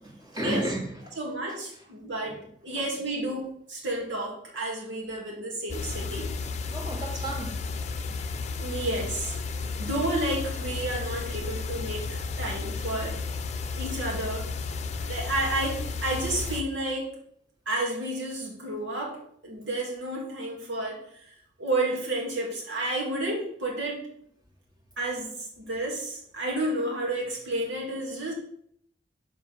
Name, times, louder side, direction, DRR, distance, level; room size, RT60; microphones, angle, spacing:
voice 1, 0.2-1.2 2.3-2.4 5.9-6.1 6.7-7.6 8.1-8.2, right 1 dB, 20° right, -1 dB, 1.7 m, -33 dB
voice 2, 1.2-2.4 2.6-6.3 8.6-9.3 9.8-13.2 13.7-14.5 15.0-17.1 17.7-21.3 21.6-24.1 25.0-28.3, right 1 dB, 80° right, -2 dB, 2.3 m, -31 dB
sound 1, 5.7-16.6, left 4 dB, 35° left, 0.7 m, -33 dB
6.7 x 4.9 x 6.3 m, 0.67 s
head